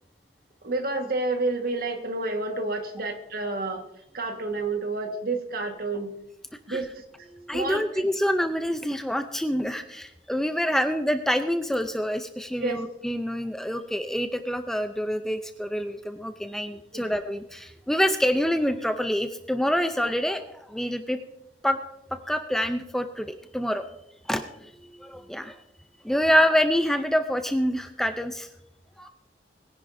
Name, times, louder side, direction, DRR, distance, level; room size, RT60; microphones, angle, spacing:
voice 1, 0.6-3.9 4.1-6.1 6.7-7.0 7.5-8.1 12.6-12.8 16.9-17.0, right 2 dB, 50° right, 5 dB, 1.5 m, -29 dB
voice 2, 7.3-21.2 21.6-21.8 22.1-23.9 24.3-24.4 25.0-25.6 26.0-28.5 29.0-29.1, equal, ahead, 7 dB, 0.4 m, -26 dB
21.0 x 10.5 x 2.6 m, 0.84 s
head